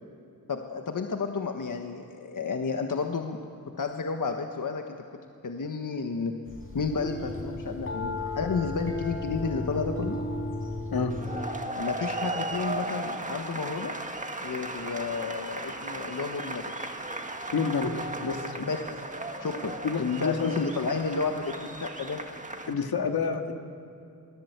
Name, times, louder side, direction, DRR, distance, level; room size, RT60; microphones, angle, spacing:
voice 1, 0.5-3.4 3.8-5.0 5.4-6.3 6.7-10.2 11.8-13.9 14.4-16.7 18.6-18.8 19.4-22.2, left 4 dB, 60° left, 4 dB, 1.4 m, -31 dB
sound 1, 6.5-11.5, left 2 dB, 35° left, 4.5 m, -34 dB
sound 2, 11.1-22.7, right 2 dB, 20° right, 1.7 m, -36 dB
voice 2, 17.5-18.7 19.8-20.6 22.7-23.5, left 5 dB, 85° left, 4 dB, 2.0 m, -29 dB
23.5 x 18.5 x 8.1 m, 2.7 s
wide cardioid pair, 85°, 36 cm